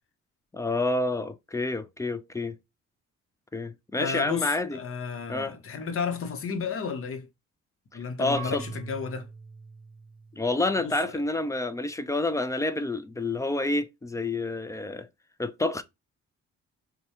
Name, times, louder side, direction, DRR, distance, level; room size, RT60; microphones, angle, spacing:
voice 1, 0.5-2.6 3.5-4.8 5.3-5.5 8.2-8.6 10.3-15.1 15.4-15.8, left 2 dB, 10° left, 0.3 m, -28 dB
voice 2, 4.0-7.3 7.9-9.3 10.8-11.2, left 5 dB, 45° left, 0.8 m, -33 dB
Marimba xylophone / Wood, 8.4-11.2, right 5 dB, 15° right, 1.7 m, -44 dB
4.5 x 2.2 x 2.8 m
cardioid pair, 90°, 30 cm